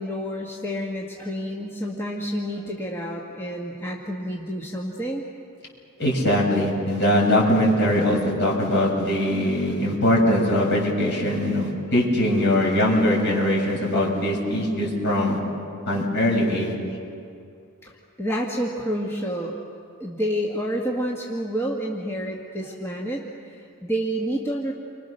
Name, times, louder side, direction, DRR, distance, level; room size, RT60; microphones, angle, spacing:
voice 1, 0.0-5.2 8.6-8.7 17.8-19.6 20.0-24.7, equal, 10° left, -2 dB, 1.8 m, -29 dB
voice 2, 6.0-15.4 15.9-16.7, left 1 dB, 50° left, -2 dB, 6.8 m, -21 dB
29.5 x 25.0 x 6.6 m, 2.4 s
head